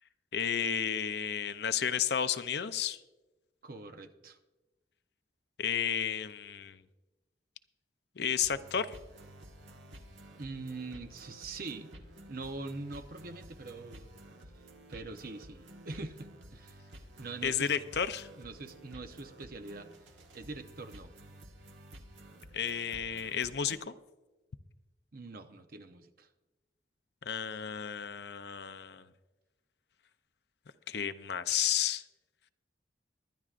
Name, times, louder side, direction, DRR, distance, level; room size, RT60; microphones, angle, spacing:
voice 1, 0.3-3.0 5.6-6.8 8.2-8.9 17.4-18.3 22.5-23.9 27.2-29.1 30.9-32.0, left 8 dB, 60° left, 12 dB, 0.5 m, -32 dB
voice 2, 3.6-4.4 10.4-11.9 12.3-14.1 14.9-16.8 17.2-17.7 18.4-19.9 20.3-21.1 25.1-26.3, right 3 dB, 50° right, 7 dB, 0.8 m, -43 dB
sound 1, 8.4-23.8, right 1 dB, 80° right, 1.5 m, -52 dB
22.5 x 10.5 x 2.5 m, 1.1 s
head